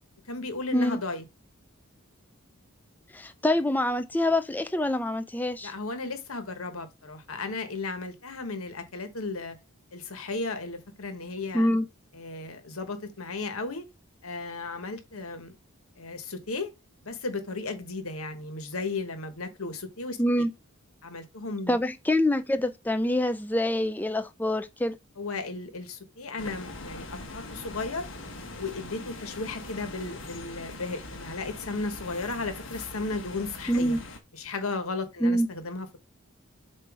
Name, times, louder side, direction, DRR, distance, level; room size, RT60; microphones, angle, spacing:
voice 1, 0.3-1.2 5.6-9.6 9.9-11.7 12.1-13.8 14.2-15.6 16.0-16.7 17.0-20.2 21.0-21.8 25.2-28.0 28.5-34.0 34.3-36.0, left 3 dB, 85° left, 1.4 m, -35 dB
voice 2, 3.1-5.7 11.5-11.9 20.2-20.5 21.7-25.0 33.7-34.0 35.2-35.5, left 1 dB, 10° left, 0.4 m, -25 dB
sound 1, 26.4-34.2, left 2 dB, 60° left, 1.4 m, -42 dB
7.7 x 2.7 x 5.0 m
head